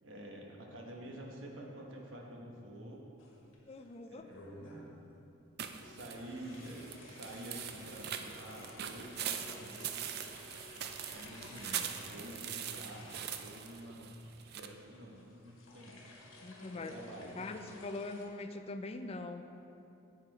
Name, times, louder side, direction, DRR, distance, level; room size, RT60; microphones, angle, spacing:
voice 1, 0.0-3.0 4.1-4.8 5.8-10.3 11.0-14.2 14.5-16.1 16.7-17.4, right 1 dB, 65° right, -1 dB, 1.2 m, -49 dB
sound 1, 3.2-3.9 4.3-5.0 5.8-18.3, left 2 dB, 70° left, 1.6 m, -54 dB
voice 2, 3.7-4.3 16.4-16.9 17.4-19.6, left 2 dB, 30° left, 7 dB, 0.4 m, -42 dB
sound 2, 5.6-14.7, right 9 dB, 50° right, 0.4 m, -42 dB
9.0 x 7.1 x 4.2 m, 2.7 s
head